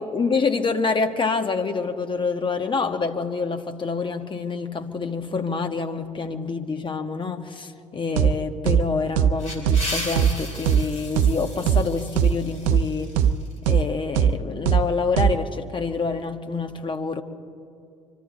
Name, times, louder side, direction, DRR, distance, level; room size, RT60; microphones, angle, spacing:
voice 1, 0.0-13.2 13.7-17.2, left 4 dB, 30° left, 6 dB, 1.4 m, -27 dB
sound 1, 8.2-8.3 8.7-8.8 9.2-9.3 9.7-9.8 10.2-10.3 10.7-10.8 11.2-11.3 11.7-11.8 12.2-12.3 12.7-12.8 13.2-13.3 13.7-13.8 14.2-14.3 14.7-14.8 15.2-15.3, right 9 dB, 65° right, 0.5 m, -18 dB
sound 2, 9.1-13.6, left 1 dB, 75° left, 3.1 m, -35 dB
25.0 x 13.5 x 4.2 m, 2.4 s
figure-of-eight pair, 50°, 17 cm